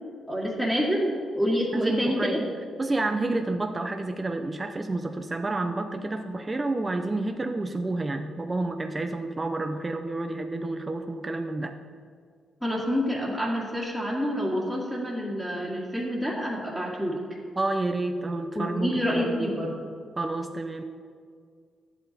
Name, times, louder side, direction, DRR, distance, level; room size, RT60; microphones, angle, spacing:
voice 1, 0.3-2.4 12.6-17.2 18.5-19.7, equal, 5° left, -6 dB, 2.0 m, -27 dB
voice 2, 1.7-2.5 2.8-11.7 17.6-19.5 20.2-20.8, right 2 dB, 25° right, 5 dB, 0.6 m, -29 dB
11.0 x 7.9 x 4.2 m, 2.1 s
cardioid pair, 75°, 0 cm